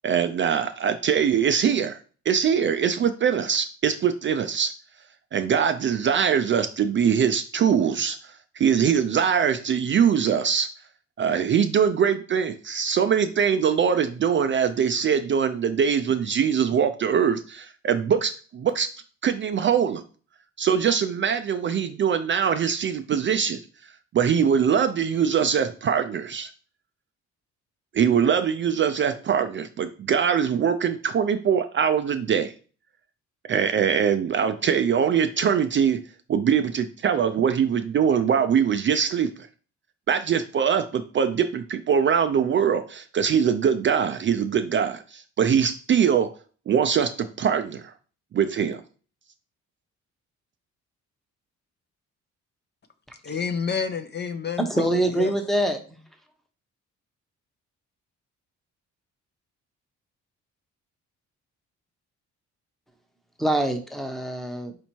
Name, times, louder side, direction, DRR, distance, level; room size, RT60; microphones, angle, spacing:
voice 1, 0.0-2.0 2.3-4.7 5.3-10.7 11.2-18.9 19.2-20.0 20.6-23.6 24.1-26.5 27.9-32.5 33.5-36.0 36.3-39.3 40.1-46.3 46.7-47.9 48.3-48.8, right 7 dB, 40° right, 0.4 m, -22 dB
voice 2, 53.2-55.3, left 6 dB, 35° left, 0.5 m, -29 dB
voice 3, 54.6-56.0 63.4-64.7, right 1 dB, ahead, 0.8 m, -25 dB
4.3 x 2.8 x 4.4 m
cardioid pair, 90°, 30 cm